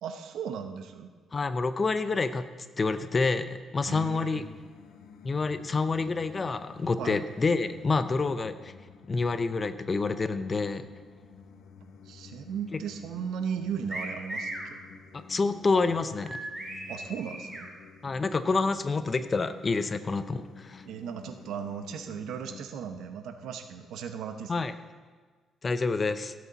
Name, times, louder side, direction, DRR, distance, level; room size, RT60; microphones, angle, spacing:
voice 1, 0.0-1.1 3.9-4.4 7.0-7.2 12.1-14.8 16.9-17.7 20.8-24.7, right 7 dB, 80° right, 8 dB, 0.9 m, -36 dB
voice 2, 1.3-2.5 2.8-4.4 5.2-8.7 9.1-10.8 15.1-16.4 18.0-20.8 24.5-24.7 25.6-26.3, left 4 dB, 35° left, 12 dB, 0.7 m, -28 dB
sound 1, 4.3-22.6, left 5 dB, 80° left, 0.9 m, -51 dB
sound 2, 13.9-14.7 16.2-17.7, right 1 dB, 15° right, 2.5 m, -37 dB
16.5 x 8.2 x 4.1 m, 1.5 s
cardioid pair, 90°, 0 cm